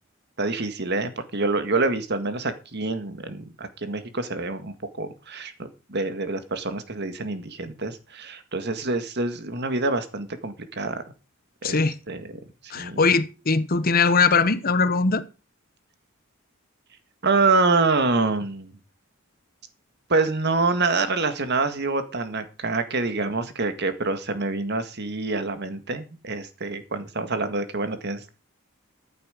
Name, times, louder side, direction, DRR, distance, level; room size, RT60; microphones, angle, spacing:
voice 1, 0.4-11.0 11.6-13.1 17.2-18.7 20.1-28.3, right 3 dB, 55° right, 1.8 m, -26 dB
voice 2, 11.6-11.9 12.7-15.2, left 4 dB, 45° left, 1.0 m, -21 dB
15.0 x 8.7 x 5.1 m
head